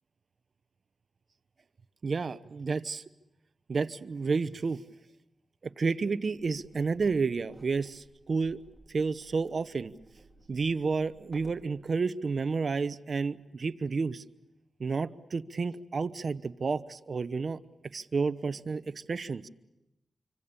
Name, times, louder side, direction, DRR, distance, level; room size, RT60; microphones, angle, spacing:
voice 1, 2.0-3.0 3.7-4.8 5.6-8.6 8.9-9.9 10.5-14.2 14.8-17.6 17.9-19.5, right 4 dB, 55° right, 13 dB, 0.9 m, -31 dB
sound 1, 6.3-11.7, right 2 dB, 10° right, 4.6 m, -57 dB
26.0 x 25.0 x 7.0 m, 0.92 s
wide cardioid pair, 80°, 0 cm